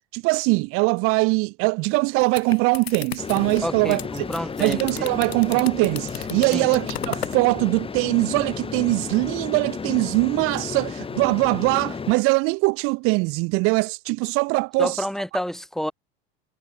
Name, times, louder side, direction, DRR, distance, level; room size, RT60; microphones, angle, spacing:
voice 1, 0.1-4.2 4.6-15.1, right 28 dB, 45° right, 0.7 m, -22 dB
sound 1, 2.0-7.4, left 9 dB, 90° left, 0.6 m, -35 dB
sound 2, 3.2-12.1, left 5 dB, 20° left, 2.3 m, -33 dB
voice 2, 3.6-5.2 6.5-6.7 14.8-15.9, equal, ahead, 2.4 m, -29 dB
hypercardioid pair, 85°, 30 cm